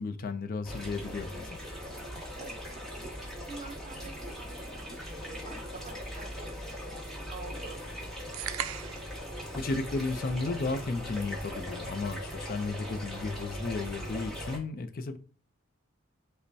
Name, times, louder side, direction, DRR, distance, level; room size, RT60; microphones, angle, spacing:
voice 1, 0.0-1.6 9.5-15.2, left 3 dB, 45° left, 0.4 m, -34 dB
sound 1, 0.6-14.6, equal, ahead, 1.0 m, -40 dB
voice 2, 2.3-6.9 7.3-8.1, right 4 dB, 40° right, 0.7 m, -48 dB
sound 2, 8.3-9.2, right 11 dB, 85° right, 0.3 m, -36 dB
5.2 x 2.1 x 2.7 m
head